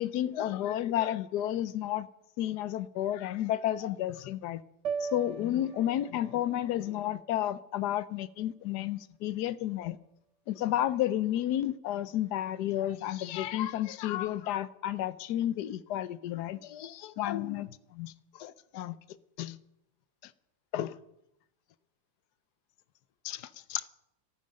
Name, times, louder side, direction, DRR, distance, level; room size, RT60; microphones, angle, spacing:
voice 1, 0.0-2.1 2.4-4.6 5.0-10.0 10.5-19.0 19.4-19.6 20.2-20.3 20.7-21.0 23.2-23.8, left 12 dB, 65° left, 1.1 m, -32 dB
sound 1, 4.8-9.1, right 6 dB, 80° right, 0.6 m, -41 dB
26.0 x 9.2 x 5.2 m
omnidirectional pair, 2.2 m